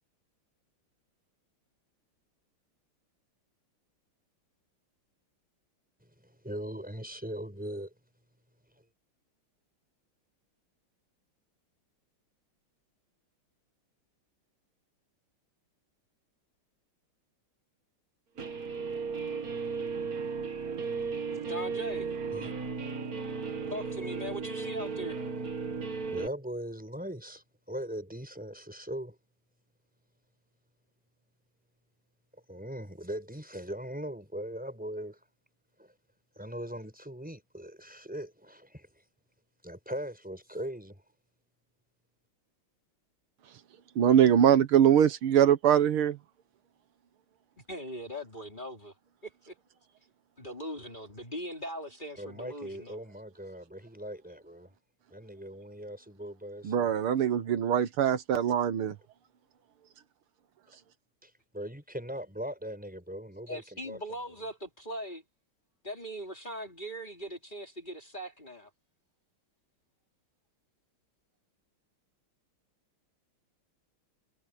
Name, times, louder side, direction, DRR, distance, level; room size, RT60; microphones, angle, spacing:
voice 1, 6.2-7.9 22.3-22.5 26.1-29.2 32.5-35.2 35.8-35.9 36.3-38.9 39.6-41.0 52.2-54.7 55.1-57.0 61.2-64.0, equal, 5° right, 5.0 m, -40 dB
Guitar, 18.4-26.3, right 5 dB, 45° right, 2.2 m, -35 dB
voice 2, 21.5-22.1 23.7-25.2 47.7-48.9 49.2-49.5 50.4-53.0 63.5-65.2 65.8-68.7, equal, 20° left, 3.7 m, -40 dB
voice 3, 44.0-46.2 56.6-59.0, right 9 dB, 80° right, 2.0 m, -23 dB
omnidirectional pair, 2.3 m